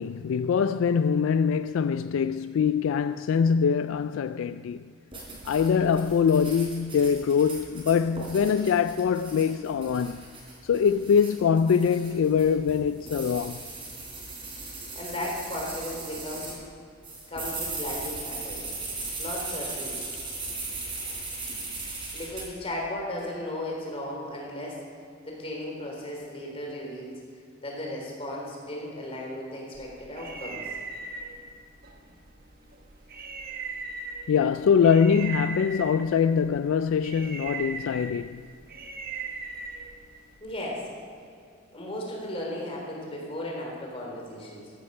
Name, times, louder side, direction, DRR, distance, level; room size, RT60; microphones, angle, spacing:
voice 1, 0.0-4.8 5.4-10.2 10.6-13.6 34.3-38.4, left 6 dB, 70° left, 0.3 m, -23 dB
sound 1, 5.1-16.6 17.0-22.5, right 3 dB, 25° right, 3.7 m, -38 dB
voice 2, 14.9-16.5 17.3-18.7 19.2-20.1 22.1-24.8 25.2-27.2 27.6-30.7 40.4-40.9 41.7-44.7, left 1 dB, 30° left, 3.5 m, -35 dB
sound 2, 29.7-40.4, right 4 dB, 45° right, 1.3 m, -39 dB
15.0 x 11.5 x 5.4 m
head